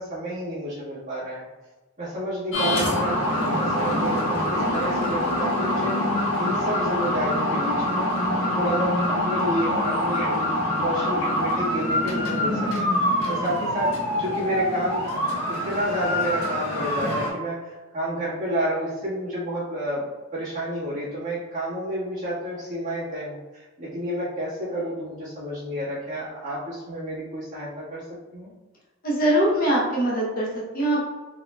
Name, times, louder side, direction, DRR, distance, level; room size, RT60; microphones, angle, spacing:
voice 1, 0.0-1.4 2.0-6.0 6.4-8.1 8.5-10.5 10.8-15.0 15.4-20.0 20.3-28.0 28.3-28.5, equal, 35° right, -10 dB, 1.4 m, -30 dB
sound 1, 2.5-17.3, left 1 dB, 75° left, 0.9 m, -25 dB
voice 2, 29.0-31.0, right 1 dB, 40° left, -5 dB, 0.7 m, -22 dB
3.8 x 3.0 x 2.2 m, 1.2 s
head